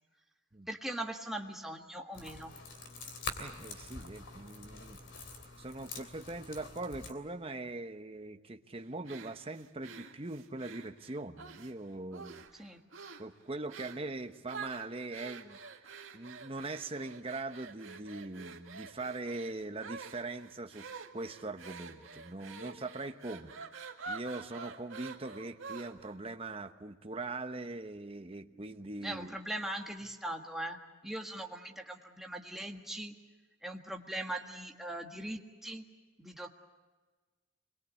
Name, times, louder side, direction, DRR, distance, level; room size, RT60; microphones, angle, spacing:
voice 1, 0.7-2.5 12.6-12.8 29.0-33.1 33.6-35.8 36.2-36.5, right 1 dB, ahead, 2 dB, 1.6 m, -40 dB
sound 1, 2.1-7.1, left 3 dB, 60° left, 3.2 m, -45 dB
voice 2, 3.4-5.0 5.6-12.7 13.2-15.6 16.1-20.9 21.1-23.5 24.1-29.4, right 2 dB, 30° right, 7 dB, 0.9 m, -41 dB
sound 2, 9.1-11.7 12.1-12.6 12.9-13.3 13.7-14.1 14.5-26.1, right 5 dB, 85° right, 2.0 m, -47 dB
26.0 x 22.0 x 8.3 m, 1.3 s
head